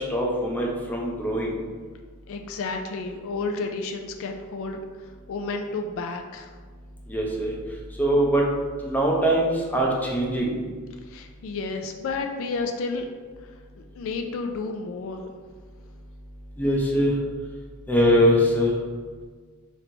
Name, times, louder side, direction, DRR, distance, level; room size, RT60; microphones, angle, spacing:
voice 1, 0.0-1.6 7.1-7.5 8.0-8.4 8.8-10.6 16.6-17.1 17.9-18.7, equal, 10° left, -3 dB, 0.6 m, -22 dB
voice 2, 2.3-4.8 5.3-6.5 11.1-13.0 13.9-15.3, left 3 dB, 65° left, 4 dB, 0.3 m, -31 dB
3.3 x 3.0 x 3.8 m, 1.5 s
head